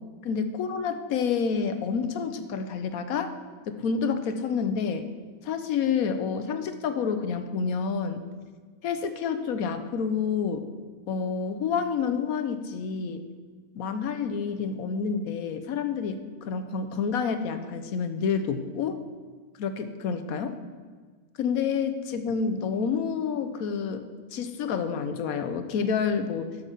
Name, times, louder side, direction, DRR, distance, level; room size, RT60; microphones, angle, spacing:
voice 1, 0.2-3.3 3.7-5.1 5.4-8.2 8.8-10.7 11.1-13.2 13.7-19.0 19.6-20.5 21.4-24.0 24.3-26.5, left 6 dB, 70° left, 9 dB, 1.2 m, -28 dB
11.5 x 5.7 x 6.6 m, 1.5 s
omnidirectional pair, 1.6 m